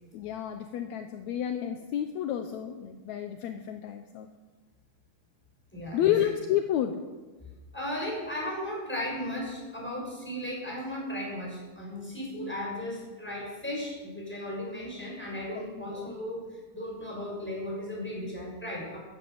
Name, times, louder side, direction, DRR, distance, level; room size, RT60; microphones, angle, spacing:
voice 1, 0.1-4.3 5.9-7.0 15.6-16.2, left 11 dB, 75° left, 7 dB, 1.7 m, -30 dB
voice 2, 5.7-6.3 7.7-16.4 16.7-19.0, left 1 dB, 5° left, -3 dB, 5.9 m, -36 dB
14.5 x 11.5 x 7.9 m, 1.3 s
omnidirectional pair, 4.1 m